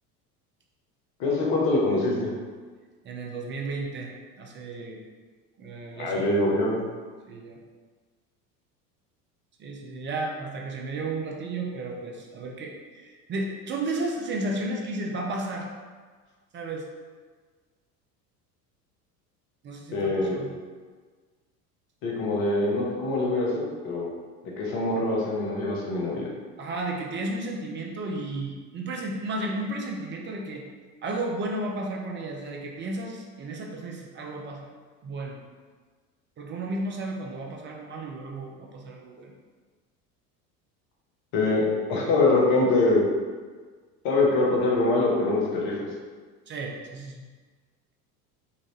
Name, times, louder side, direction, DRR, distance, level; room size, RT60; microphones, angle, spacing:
voice 1, 1.2-2.3 6.0-6.8 19.9-20.4 22.0-24.1 24.6-26.3 41.3-43.0 44.0-45.7, left 2 dB, 60° left, -3 dB, 1.1 m, -24 dB
voice 2, 3.0-5.0 5.6-6.2 7.3-7.6 9.6-15.7 16.5-16.9 19.6-20.5 26.6-30.6 31.0-34.7 35.0-35.4 36.4-39.3 46.5-47.3, right 2 dB, 25° right, 0 dB, 0.5 m, -33 dB
3.8 x 2.5 x 3.0 m, 1.5 s
figure-of-eight pair, 75°, 47 cm